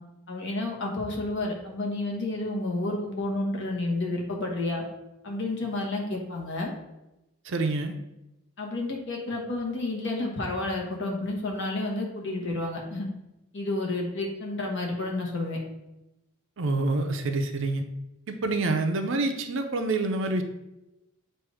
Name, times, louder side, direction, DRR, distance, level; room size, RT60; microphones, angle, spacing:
voice 1, 0.3-4.8 5.2-6.7 8.6-13.1 13.5-15.6, left 2 dB, 55° left, -1 dB, 1.2 m, -30 dB
voice 2, 7.5-7.9 16.6-17.8 18.3-20.4, right 2 dB, 60° right, 6 dB, 0.6 m, -27 dB
7.5 x 2.6 x 4.8 m, 0.95 s
head